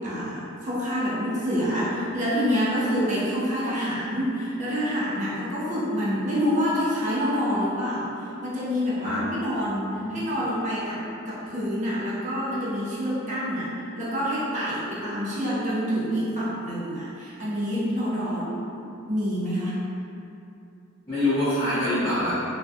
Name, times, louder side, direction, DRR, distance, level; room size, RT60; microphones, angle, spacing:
voice 1, 0.0-19.8, equal, 35° right, -8 dB, 0.6 m, -27 dB
voice 2, 21.1-22.3, left 1 dB, 20° left, -18 dB, 0.8 m, -25 dB
2.3 x 2.2 x 2.6 m, 2.7 s
head